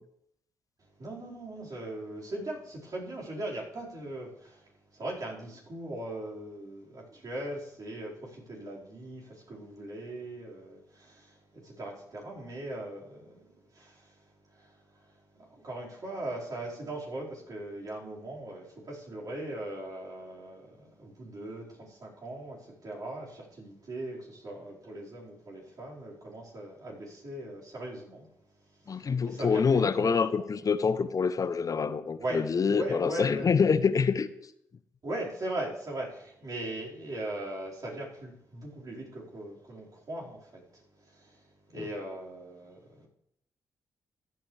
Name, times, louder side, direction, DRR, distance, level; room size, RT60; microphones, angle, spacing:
voice 1, 0.8-30.2 31.8-33.5 35.0-43.1, right 1 dB, 50° right, 4.8 m, -40 dB
voice 2, 28.9-34.3 41.8-41.9, left 5 dB, 45° left, 0.6 m, -26 dB
14.5 x 9.0 x 3.4 m
hypercardioid pair, 45°, 8 cm